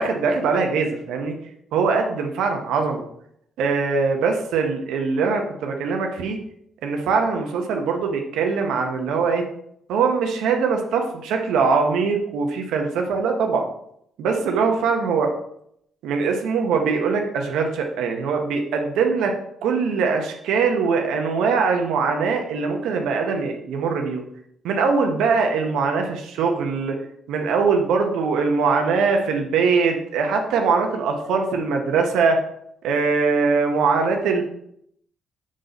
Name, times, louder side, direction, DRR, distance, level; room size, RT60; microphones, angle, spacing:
voice 1, 0.0-1.4 1.7-3.0 3.6-6.4 6.8-9.4 9.9-13.7 14.2-15.3 16.0-24.2 24.6-27.0 27.3-32.4 32.8-34.4, right 5 dB, 85° right, 3 dB, 0.8 m, -22 dB
6.2 x 4.1 x 3.9 m, 0.73 s
cardioid pair, 90°, 0 cm